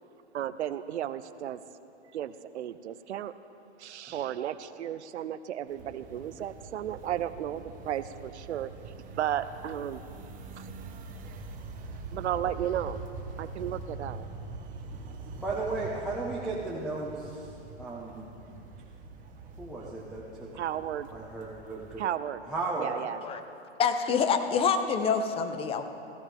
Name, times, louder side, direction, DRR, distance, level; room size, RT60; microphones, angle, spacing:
voice 1, 0.3-1.6 2.1-3.3 3.8-8.7 9.1-10.0 10.6-10.7 12.1-13.0 13.4-14.3 20.5-21.1 22.0-22.4 22.8-23.2, right 11 dB, 75° right, 13 dB, 0.6 m, -34 dB
sound 1, 5.7-22.0, right 3 dB, 25° right, 1.4 m, -44 dB
voice 2, 15.4-17.4 17.8-18.3 19.6-20.5 21.1-22.0 22.5-22.9, right 3 dB, ahead, -5 dB, 1.2 m, -34 dB
voice 3, 23.8-25.8, left 6 dB, 15° left, 9 dB, 0.7 m, -26 dB
16.5 x 15.0 x 3.6 m, 2.7 s
hypercardioid pair, 125°, 34 cm